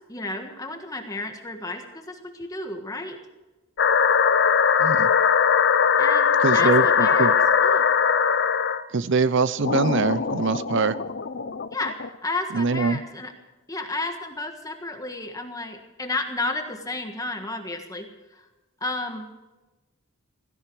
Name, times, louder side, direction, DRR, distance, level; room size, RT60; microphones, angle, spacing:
voice 1, 0.1-3.2 6.0-7.3 7.6-7.8 11.7-13.3 13.7-18.5 18.8-19.3, left 2 dB, 20° left, 5 dB, 1.5 m, -32 dB
sound 1, 3.8-8.8 9.6-12.1, left 6 dB, 60° left, 0.8 m, -20 dB
voice 2, 6.4-7.3 8.9-11.0 12.5-13.0, right 4 dB, 65° right, 16 dB, 0.7 m, -23 dB
16.5 x 16.5 x 4.8 m, 1.1 s
head